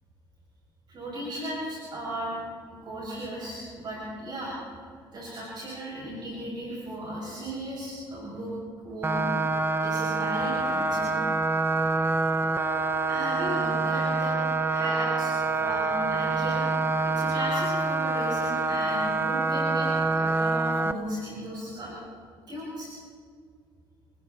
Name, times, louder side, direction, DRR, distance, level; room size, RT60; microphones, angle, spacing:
voice 1, 0.9-2.4 2.8-4.6 5.1-8.5 8.8-9.2 9.8-11.2 13.1-14.3 14.7-16.6 17.0-21.9 22.5-22.9, right 1 dB, 50° right, -5 dB, 7.3 m, -36 dB
sound 1, 9.0-20.9, right 3 dB, 25° right, 1.2 m, -26 dB
30.0 x 20.0 x 4.4 m, 2.1 s
cardioid pair, 80°, 9 cm